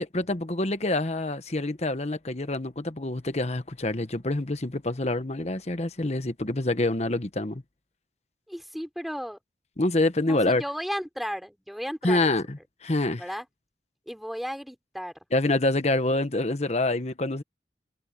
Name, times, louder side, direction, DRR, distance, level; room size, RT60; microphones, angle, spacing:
voice 1, 0.0-7.6 9.8-10.6 12.0-13.2 15.3-17.4, left 2 dB, 40° left, 1.1 m, -26 dB
voice 2, 8.5-9.4 10.3-12.3 13.2-13.4 14.1-15.1, equal, ahead, 3.2 m, -34 dB
head